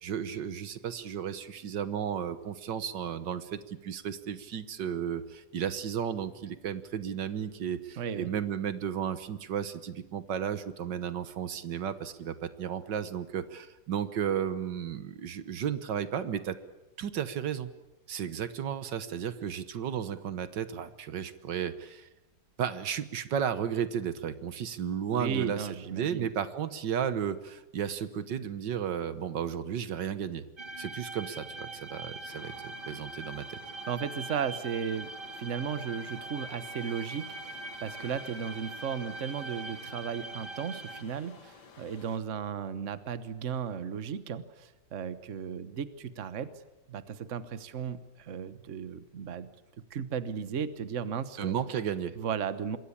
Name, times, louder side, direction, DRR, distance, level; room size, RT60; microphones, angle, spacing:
voice 1, 0.0-16.6 17.0-17.7 18.1-22.1 22.6-30.4 30.8-33.6 51.4-52.2, right 8 dB, 75° right, 12 dB, 1.8 m, -34 dB
voice 2, 8.0-8.3 25.1-26.3 33.9-46.5 46.9-49.5 49.9-51.6 52.2-52.8, right 7 dB, 45° right, 13 dB, 1.4 m, -35 dB
sound 1, 30.6-41.0, right 2 dB, 30° right, 1.9 m, -42 dB
sound 2, 32.3-42.2, left 5 dB, 70° left, 2.1 m, -53 dB
27.0 x 22.0 x 8.6 m, 0.98 s
omnidirectional pair, 1.9 m